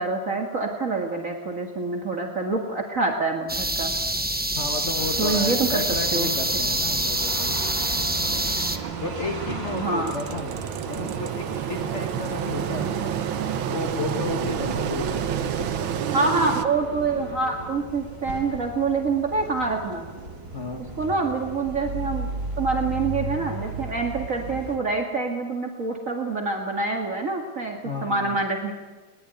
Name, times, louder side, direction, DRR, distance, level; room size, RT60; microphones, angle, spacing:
voice 1, 0.0-3.9 5.2-5.8 6.1-6.3 9.7-10.1 16.1-20.1 21.0-22.3 22.6-28.7, right 3 dB, 45° right, 2 dB, 2.3 m, -26 dB
sound 1, 3.5-8.8, right 1 dB, 10° right, 0.5 m, -26 dB
voice 2, 4.6-7.5 9.0-10.6 10.9-16.4 20.5-21.0 27.8-28.4, left 3 dB, 40° left, 5 dB, 1.8 m, -33 dB
Res. traffic, 5.0-24.8, right 2 dB, 70° right, 4.1 m, -36 dB
Engine, 8.2-16.7, right 9 dB, 90° right, 1.8 m, -29 dB
20.5 x 20.0 x 9.1 m, 1.3 s
omnidirectional pair, 2.1 m